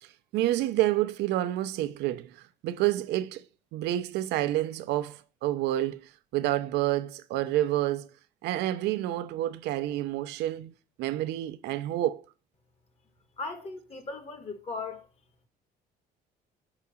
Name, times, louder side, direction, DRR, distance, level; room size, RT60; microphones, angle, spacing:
voice 1, 0.0-3.4 3.7-8.1 8.4-12.2, right 14 dB, 85° right, 0.6 m, -29 dB
voice 2, 13.4-15.1, left 3 dB, 40° left, 1.5 m, -37 dB
4.9 x 4.8 x 5.6 m
cardioid pair, 110°, 17 cm